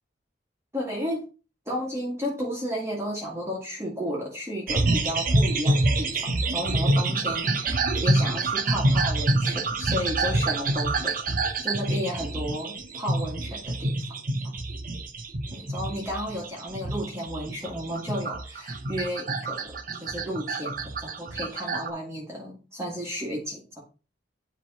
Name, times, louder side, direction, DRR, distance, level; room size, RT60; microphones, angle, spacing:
voice 1, 0.7-1.2 1.7-11.1 11.6-13.9 14.4-14.5 15.5-23.8, equal, 15° right, -3 dB, 1.7 m, -33 dB
sound 1, 4.7-21.9, right 2 dB, 45° right, 0.8 m, -27 dB
10.5 x 3.4 x 4.1 m, 0.34 s
head